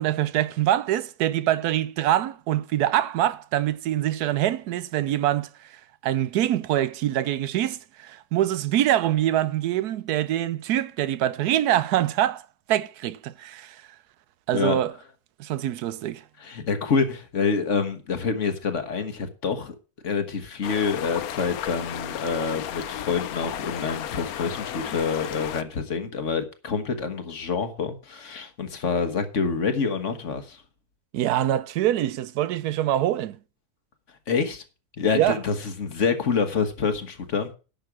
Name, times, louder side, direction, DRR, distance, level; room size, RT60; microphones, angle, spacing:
voice 1, 0.0-5.5 6.0-12.4 12.7-13.8 14.5-14.9 15.4-16.2 31.1-33.4 35.1-35.4, right 12 dB, 85° right, 1.2 m, -24 dB
voice 2, 16.4-19.7 20.0-30.6 34.3-34.6 35.0-37.5, left 5 dB, 55° left, 1.5 m, -27 dB
sound 1, 20.6-25.6, left 11 dB, 75° left, 1.1 m, -34 dB
10.5 x 6.5 x 6.1 m
omnidirectional pair, 1.6 m